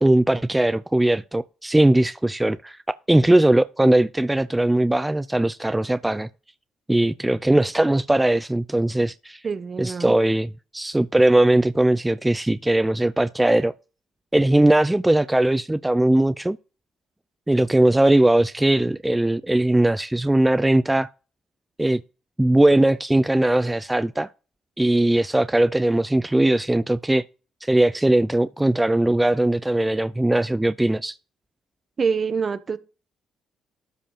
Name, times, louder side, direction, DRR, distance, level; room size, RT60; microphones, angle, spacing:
voice 1, 0.0-2.8 3.1-6.3 6.9-9.4 9.8-13.7 14.3-16.6 17.5-21.1 21.8-22.0 22.4-24.3 24.8-27.2 27.6-31.2, right 1 dB, 15° right, 0.5 m, -19 dB
voice 2, 9.4-10.1 32.0-32.8, right 5 dB, 45° right, 1.2 m, -25 dB
12.5 x 5.2 x 5.1 m
hypercardioid pair, 50°, 0 cm